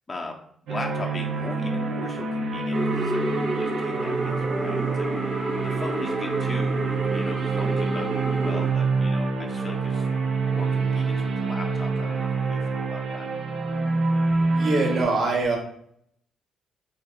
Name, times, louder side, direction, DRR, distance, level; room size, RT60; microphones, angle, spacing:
voice 1, 0.7-5.1 5.6-6.8 7.1-10.1 10.5-13.3, left 2 dB, 25° left, 1 dB, 0.5 m, -38 dB
sound 1, 0.7-15.0, right 4 dB, 85° right, 0.9 m, -26 dB
sound 2, 2.7-8.7, right 2 dB, 20° right, 1.0 m, -30 dB
voice 2, 14.6-15.6, right 3 dB, 55° right, 0 dB, 1.1 m, -23 dB
3.5 x 3.3 x 2.4 m, 0.69 s
cardioid pair, 120°, 0 cm